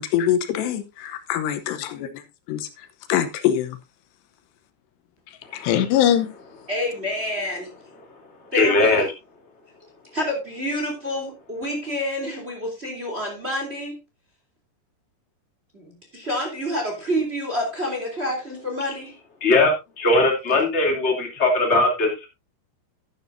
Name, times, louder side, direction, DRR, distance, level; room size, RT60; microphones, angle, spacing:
voice 1, 0.0-2.1 2.5-3.8 5.3-6.3, left 10 dB, 80° left, 3.0 m, -23 dB
voice 2, 6.7-7.7 8.5-9.0 10.1-13.9 15.7-19.1, left 1 dB, 15° right, 2.8 m, -28 dB
voice 3, 8.5-9.0 19.4-22.3, left 2 dB, 20° left, 2.3 m, -19 dB
12.0 x 11.0 x 2.6 m
omnidirectional pair, 4.9 m